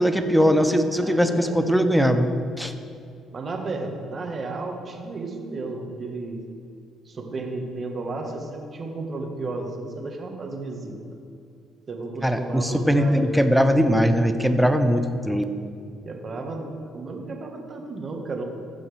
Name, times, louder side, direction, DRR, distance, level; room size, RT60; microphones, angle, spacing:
voice 1, 0.0-2.7 12.2-15.4, equal, ahead, 7 dB, 0.9 m, -20 dB
voice 2, 0.9-1.7 3.3-6.4 7.0-11.0 11.9-13.5 16.0-18.4, right 3 dB, 45° right, 2 dB, 1.7 m, -33 dB
15.5 x 6.1 x 3.5 m, 2.5 s
supercardioid pair, 60°, 0 cm